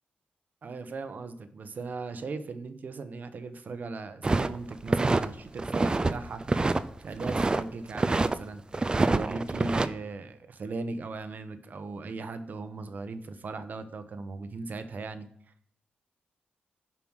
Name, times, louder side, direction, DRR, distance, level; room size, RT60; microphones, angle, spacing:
voice 1, 0.6-6.4 7.0-8.6 9.1-15.3, right 3 dB, 55° right, 10 dB, 0.8 m, -38 dB
sound 1, 4.2-5.3 5.6-6.1 6.4-7.6 7.9-8.3 8.7-9.9, right 3 dB, 25° right, 0.4 m, -26 dB
7.2 x 5.7 x 6.3 m, 0.63 s
wide cardioid pair, 105°, 3 cm